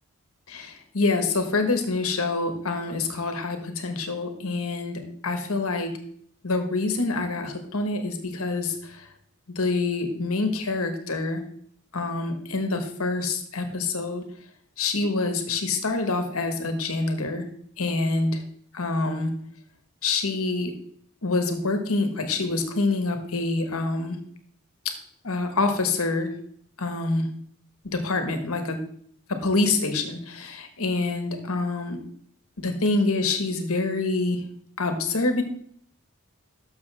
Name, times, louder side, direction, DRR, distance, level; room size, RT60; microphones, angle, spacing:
voice 1, 0.5-5.9 6.4-9.1 9.5-11.4 11.9-14.2 14.8-17.4 17.8-18.4 18.7-19.3 20.0-20.7 21.2-24.2 25.2-26.3 26.8-27.3 27.8-28.8 29.3-32.0 32.6-34.4 34.8-35.4, left 3 dB, 80° left, 6 dB, 1.5 m, -26 dB
12.0 x 6.6 x 3.5 m, 0.64 s
head